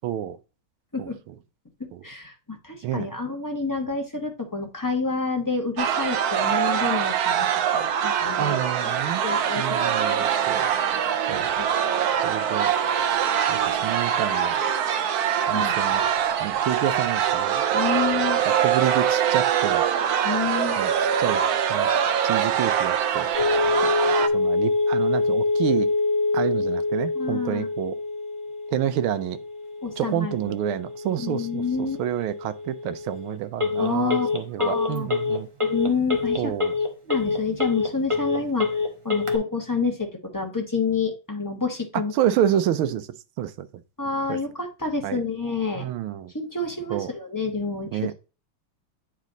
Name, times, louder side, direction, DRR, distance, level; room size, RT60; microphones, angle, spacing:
voice 1, 0.0-0.4 1.0-1.1 1.9-2.0 2.8-3.1 8.4-9.2 9.6-10.7 11.3-11.5 12.2-12.7 13.5-14.5 15.5-16.0 16.4-17.6 18.6-19.8 20.8-21.9 22.2-23.3 24.3-25.9 26.3-28.0 28.7-29.4 30.0-35.5 36.4-36.8 41.9-43.1 43.4-43.7 44.3-44.4 45.0-45.2 45.7-46.3 46.9-47.1 47.9-48.1, right 11 dB, 85° right, 1.6 m, -28 dB
voice 2, 1.8-8.6 9.2-10.5 10.7-11.1 11.6-11.7 15.5-15.8 17.7-18.4 20.2-20.8 27.1-27.7 29.8-30.6 31.2-32.0 33.8-34.3 34.6-35.1 35.6-36.5 37.1-38.7 39.0-42.1 44.0-45.9 46.3-48.1, left 4 dB, 15° left, 0.6 m, -28 dB
sound 1, 5.8-24.3, right 8 dB, 65° right, 1.0 m, -23 dB
Telephone, 23.3-39.4, left 3 dB, 25° right, 0.6 m, -26 dB
9.5 x 3.4 x 3.8 m
omnidirectional pair, 2.3 m